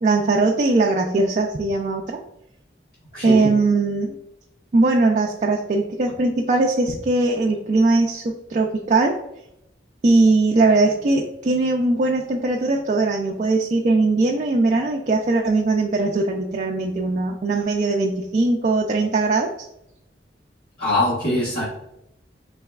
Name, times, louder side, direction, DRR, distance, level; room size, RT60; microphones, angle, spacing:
voice 1, 0.0-2.2 3.2-4.2 4.7-9.2 10.0-19.7, right 3 dB, 45° right, 1 dB, 0.4 m, -20 dB
voice 2, 3.1-3.5 20.8-21.6, left 1 dB, 55° left, -9 dB, 1.2 m, -22 dB
4.6 x 3.3 x 2.3 m, 0.82 s
head